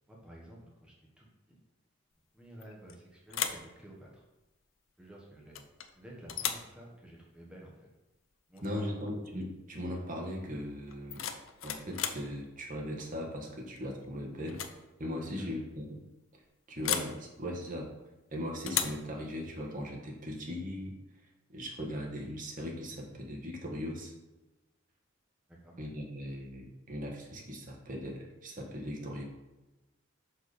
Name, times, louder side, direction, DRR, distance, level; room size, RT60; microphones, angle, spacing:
voice 1, 0.1-1.6 2.3-4.2 5.0-5.6 5.9-7.8 8.5-9.1 15.2-15.7 25.5-25.8, right 1 dB, 5° right, -3 dB, 1.1 m, -52 dB
sound 1, 2.6-3.0 3.3-3.7 5.5-5.9 6.3-6.7 8.6-8.7 9.1-9.4 10.9-12.3 13.8-14.1 14.4-14.8 15.0-15.1 16.8-17.2 18.7-19.1, left 9 dB, 75° left, 0.6 m, -35 dB
voice 2, 8.6-11.2 11.6-14.6 15.0-16.0 16.7-17.9 18.3-20.9 21.5-24.1 25.8-29.2, equal, 40° right, 0 dB, 1.4 m, -39 dB
6.1 x 4.6 x 4.9 m, 1.0 s
head